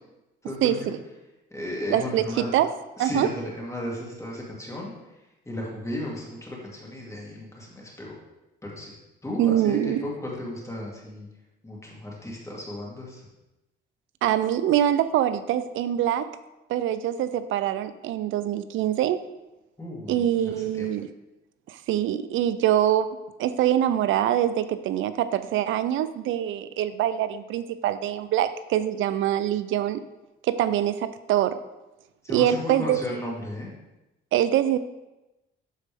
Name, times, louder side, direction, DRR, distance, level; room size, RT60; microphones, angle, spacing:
voice 1, 0.4-0.9 1.5-2.5 3.0-4.9 5.5-8.2 8.6-8.9 9.2-11.3 11.6-13.2 19.8-20.9 32.2-33.7, left 1 dB, 15° left, -4 dB, 2.4 m, -35 dB
voice 2, 1.9-2.7 3.0-3.3 9.4-10.1 14.2-16.3 16.7-19.2 20.1-21.1 21.7-23.1 23.4-30.0 30.4-31.6 32.3-33.0 34.3-34.8, right 11 dB, 80° right, 13 dB, 0.5 m, -24 dB
12.0 x 4.1 x 3.5 m, 1.0 s
cardioid pair, 90°, 20 cm